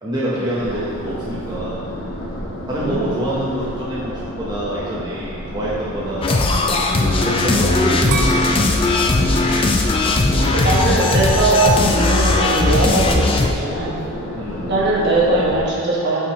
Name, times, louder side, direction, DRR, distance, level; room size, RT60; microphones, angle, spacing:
voice 1, 0.0-1.9 2.7-6.5 6.9-8.6 14.4-14.7, right 1 dB, 20° right, -8 dB, 0.9 m, -26 dB
sound 1, 0.6-15.6, equal, 90° left, 1.4 m, -31 dB
sound 2, 6.2-13.5, left 2 dB, 25° left, 0.4 m, -18 dB
sound 3, 8.1-11.0 11.5-12.0, right 2 dB, 75° right, 0.7 m, -28 dB
voice 2, 10.5-14.0 14.7-16.3, right 2 dB, 50° right, -5 dB, 1.3 m, -20 dB
5.6 x 5.3 x 4.2 m, 2.2 s
head